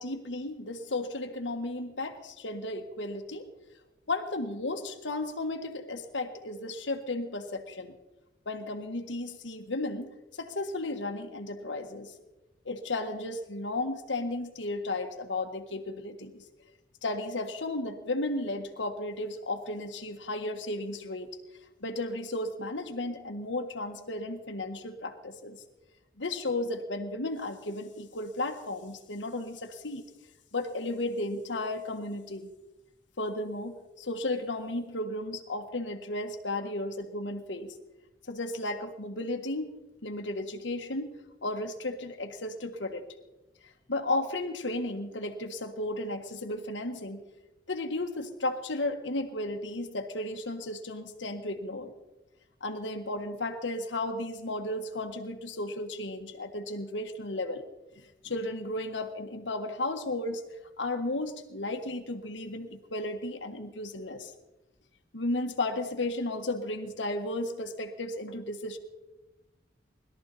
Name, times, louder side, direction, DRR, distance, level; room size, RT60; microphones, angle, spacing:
voice 1, 0.0-3.5 4.1-7.9 8.4-10.1 10.4-12.1 12.6-16.4 17.0-21.3 21.8-25.6 26.2-30.0 30.5-32.5 33.2-37.7 38.3-39.8 40.0-43.0 43.9-47.2 47.7-51.9 52.6-57.6 58.0-60.4 60.8-64.3 65.1-68.8, left 2 dB, 80° left, 5 dB, 1.6 m, -34 dB
21.0 x 13.0 x 4.2 m, 1.0 s
head